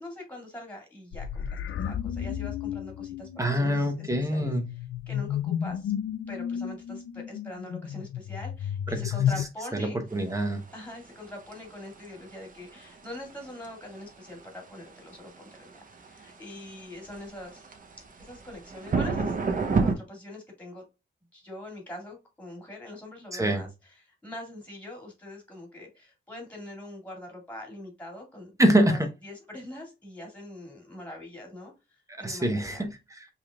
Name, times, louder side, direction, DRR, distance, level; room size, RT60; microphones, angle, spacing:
voice 1, 0.0-5.9 6.3-10.0 10.7-17.8 18.2-19.3 19.8-20.8 21.3-23.7 24.0-28.5 28.8-32.9, left 1 dB, 5° left, 1 dB, 2.2 m, -43 dB
sound 1, 1.1-9.4, left 9 dB, 75° left, 0.4 m, -32 dB
voice 2, 3.4-4.7 8.9-9.0 9.7-10.6 23.3-23.6 28.6-29.1 32.2-33.3, right 1 dB, 15° right, 6 dB, 0.9 m, -25 dB
sound 2, 10.1-19.9, right 4 dB, 40° right, 0.8 m, -32 dB
5.5 x 3.4 x 2.4 m, 0.26 s
wide cardioid pair, 155°, 21 cm